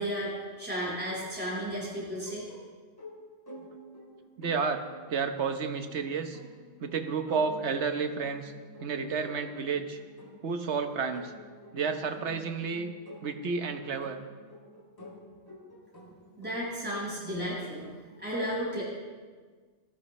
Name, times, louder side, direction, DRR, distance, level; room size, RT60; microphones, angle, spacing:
voice 1, 0.0-2.5 16.4-17.9 18.2-18.8, equal, 10° right, -8 dB, 5.7 m, -33 dB
sound 1, 1.1-17.1, left 1 dB, 20° left, 2.5 m, -50 dB
voice 2, 4.4-4.8 5.1-6.4 6.8-8.5 8.8-10.0 10.4-11.3 11.7-12.9 13.2-14.2 17.8-17.9, right 5 dB, 75° right, 7 dB, 1.3 m, -31 dB
20.0 x 15.0 x 3.2 m, 1.5 s
omnidirectional pair, 1.2 m